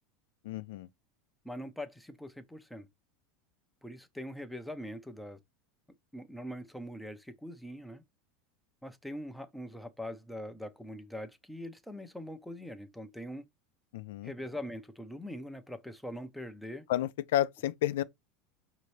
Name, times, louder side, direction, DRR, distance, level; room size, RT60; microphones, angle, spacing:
voice 1, 0.4-0.9 13.9-14.3 16.9-18.0, left 13 dB, 80° left, 0.4 m, -31 dB
voice 2, 1.4-2.9 3.8-5.4 6.1-8.0 8.8-13.4 14.2-16.8, equal, ahead, 0.5 m, -42 dB
5.2 x 2.7 x 3.2 m
supercardioid pair, 140°, 0 cm